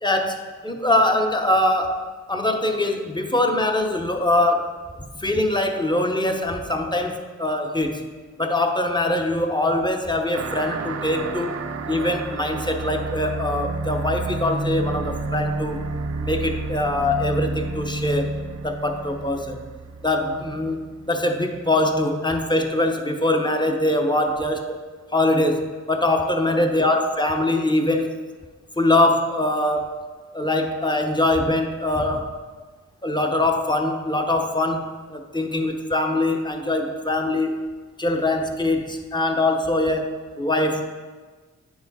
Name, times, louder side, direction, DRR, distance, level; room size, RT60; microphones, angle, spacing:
voice 1, 0.0-2.0 2.3-4.7 5.2-8.0 8.4-15.8 16.2-18.4 18.6-19.6 20.0-24.8 25.1-28.1 28.8-30.0 30.3-32.3 33.0-37.6 38.0-40.8, left 1 dB, 15° left, 4 dB, 0.8 m, -23 dB
sound 1, 10.3-21.3, right 3 dB, 55° right, 0.5 m, -30 dB
8.8 x 4.8 x 4.0 m, 1.4 s
cardioid pair, 80°, 30 cm